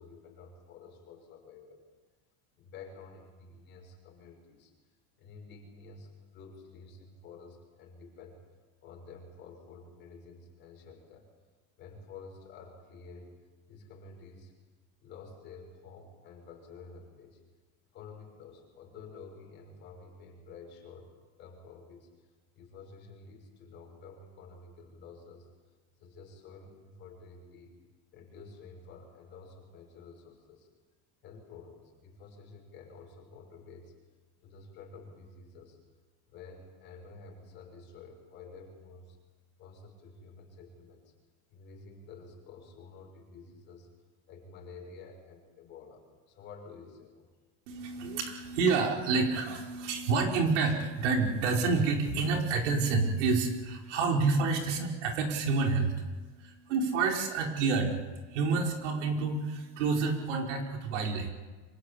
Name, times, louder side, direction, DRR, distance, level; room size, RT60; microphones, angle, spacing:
voice 1, 0.0-1.8 2.6-4.7 5.2-8.4 8.8-11.3 11.8-13.4 13.7-14.5 15.0-17.4 17.9-21.1 21.4-22.1 22.5-25.5 26.0-27.7 28.1-30.7 31.2-34.0 34.4-35.8 36.3-39.2 39.6-41.1 41.5-43.9 44.3-47.3, left 4 dB, 30° left, 1 dB, 6.5 m, -50 dB
voice 2, 47.7-61.3, right 4 dB, 85° right, 2 dB, 5.1 m, -29 dB
26.0 x 25.5 x 8.6 m, 1.3 s
supercardioid pair, 180°, 35 cm